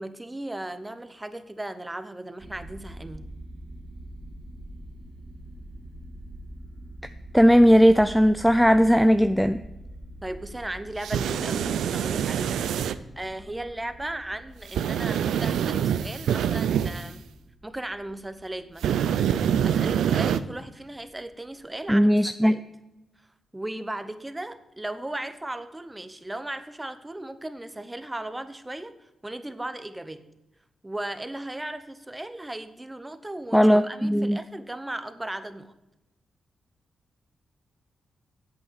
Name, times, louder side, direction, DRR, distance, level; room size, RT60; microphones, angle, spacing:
voice 1, 0.0-3.3 10.2-12.6 13.2-17.2 17.6-19.0 19.4-22.6 23.5-28.9 29.2-30.3 30.8-35.7, right 1 dB, 15° right, 11 dB, 1.0 m, -36 dB
sound 1, 2.4-22.0, right 1 dB, 55° right, 1.5 m, -45 dB
voice 2, 7.3-9.6 21.9-22.6 33.5-34.4, equal, ahead, 10 dB, 0.4 m, -18 dB
sound 2, 11.0-12.9 14.7-17.0 18.8-20.4, right 9 dB, 90° right, 0.4 m, -25 dB
8.5 x 7.9 x 6.5 m, 0.95 s
cardioid pair, 65°, 0 cm